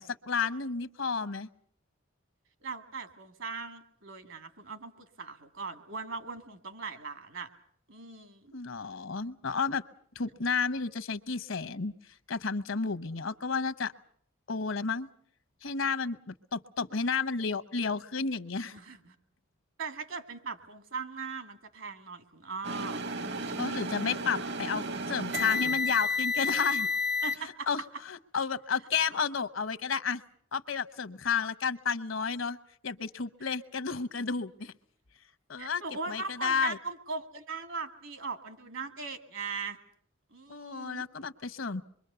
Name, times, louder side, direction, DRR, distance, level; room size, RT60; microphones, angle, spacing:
voice 1, 0.0-1.5 8.5-9.8 10.1-11.9 12.3-13.9 14.5-15.1 15.6-18.8 23.6-26.9 27.4-30.2 30.5-32.6 32.8-34.7 35.5-35.8 36.1-36.8 40.5-41.8, left 5 dB, 75° left, 13 dB, 0.9 m, -32 dB
voice 2, 2.6-7.5 7.9-8.5 18.7-19.2 19.8-23.0 23.3-24.1 27.2-27.7 35.6-39.8 40.3-41.0, right 4 dB, 75° right, 9 dB, 2.2 m, -40 dB
sound 1, 22.6-27.4, left 3 dB, 60° right, 1.0 m, -31 dB
26.0 x 23.0 x 6.9 m, 0.62 s
head